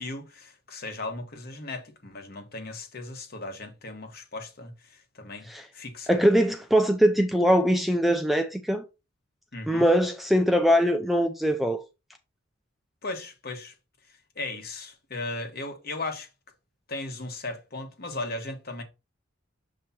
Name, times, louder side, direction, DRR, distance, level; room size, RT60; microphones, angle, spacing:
voice 1, 0.0-5.5 5.7-6.3 9.5-9.9 13.0-13.7 14.3-16.3 16.9-18.8, left 2 dB, 50° left, 1.3 m, -37 dB
voice 2, 6.1-8.8 9.7-11.8, equal, ahead, 0.4 m, -22 dB
7.0 x 3.2 x 4.2 m
head